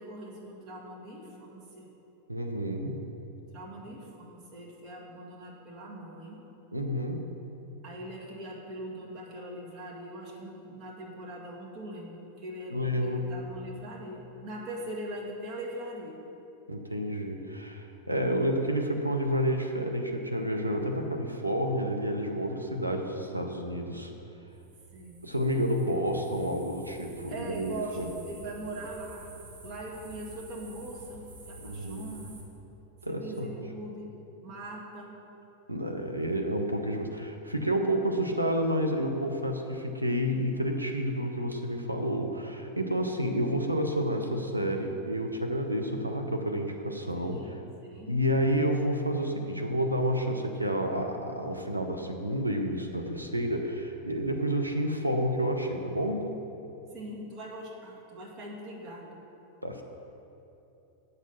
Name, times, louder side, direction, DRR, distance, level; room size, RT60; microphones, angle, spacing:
voice 1, 0.0-1.9 3.5-6.4 7.8-16.2 24.9-25.3 25.8-26.0 27.3-29.3 29.6-32.4 33.1-34.1 34.4-35.2 47.1-48.2 56.9-59.2, right 1 dB, 35° right, -4 dB, 2.1 m, -41 dB
voice 2, 2.3-3.0 6.7-7.3 12.7-13.3 16.7-24.1 25.2-28.1 31.6-32.1 33.0-33.6 35.7-47.4 48.1-56.3 59.6-59.8, equal, 85° right, 3 dB, 0.7 m, -30 dB
sound 1, 24.5-32.4, right 2 dB, 55° right, 2.0 m, -50 dB
8.4 x 6.6 x 5.7 m, 2.9 s
figure-of-eight pair, 90°, 0 cm